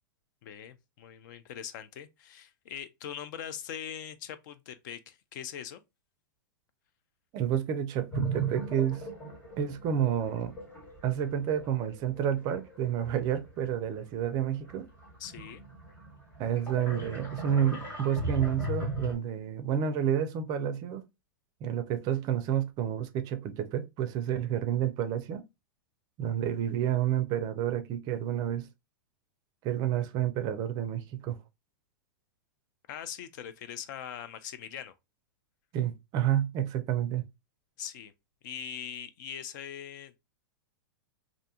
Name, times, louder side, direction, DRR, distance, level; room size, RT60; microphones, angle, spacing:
voice 1, 0.4-5.8 15.2-15.6 32.9-34.9 37.8-38.1 38.4-40.2, left 9 dB, 55° left, 0.4 m, -41 dB
voice 2, 7.3-9.0 9.6-10.5 11.0-14.9 16.4-21.0 21.6-25.4 26.2-28.7 29.6-31.4 35.7-37.2, right 10 dB, 35° right, 0.4 m, -30 dB
sound 1, 8.1-14.0 14.5-19.1, right 2 dB, 15° left, 1.1 m, -38 dB
2.5 x 2.2 x 2.6 m
hypercardioid pair, 135°, 12 cm